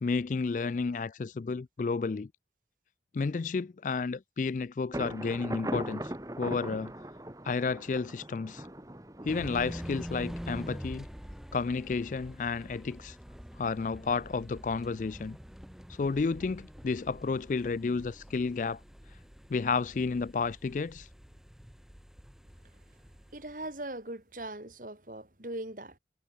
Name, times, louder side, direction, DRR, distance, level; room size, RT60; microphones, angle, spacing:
voice 1, 0.0-2.3 3.1-6.0 6.4-6.9 7.4-8.7 9.2-11.1 11.5-13.2 13.6-15.4 16.0-18.8 19.5-21.1, left 4 dB, 45° left, 0.4 m, -31 dB
Thunder, 4.9-10.6, right 1 dB, 20° right, 1.7 m, -40 dB
sound 1, 9.3-23.7, equal, ahead, 0.7 m, -45 dB
voice 2, 23.3-26.0, right 1 dB, 50° right, 3.2 m, -40 dB
head